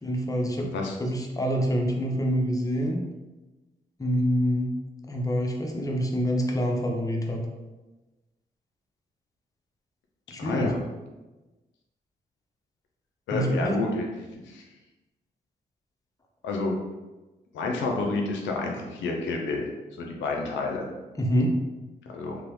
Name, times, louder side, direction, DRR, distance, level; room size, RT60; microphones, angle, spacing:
voice 1, 0.0-0.7 1.0-3.0 4.0-4.7 5.1-7.4 10.3-10.7 13.3-13.8 21.1-21.6, equal, 20° left, 1 dB, 0.6 m, -26 dB
voice 2, 0.6-1.0 10.4-10.8 13.3-14.1 14.4-14.6 16.4-16.8 17.5-19.7 20.0-20.9 22.1-22.4, left 3 dB, 90° left, 1 dB, 0.4 m, -29 dB
2.9 x 2.1 x 2.9 m, 1.1 s
supercardioid pair, 45°, 19 cm